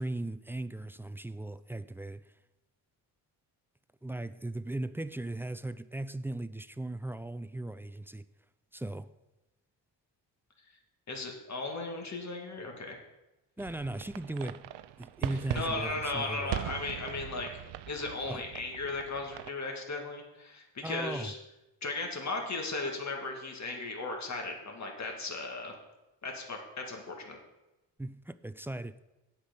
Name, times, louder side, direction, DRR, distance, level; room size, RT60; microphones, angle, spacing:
voice 1, 0.0-2.2 4.0-8.2 8.7-9.1 13.6-14.6 15.0-16.5 18.2-18.4 20.8-21.3 28.0-28.9, right 2 dB, 5° right, 0.3 m, -37 dB
voice 2, 11.1-13.0 15.5-17.5 17.9-21.3 21.8-25.8 26.2-27.4, left 3 dB, 40° left, 2.1 m, -36 dB
sound 1, 13.6-19.5, right 13 dB, 65° right, 0.6 m, -40 dB
8.2 x 6.0 x 6.8 m
supercardioid pair, 60°, 44 cm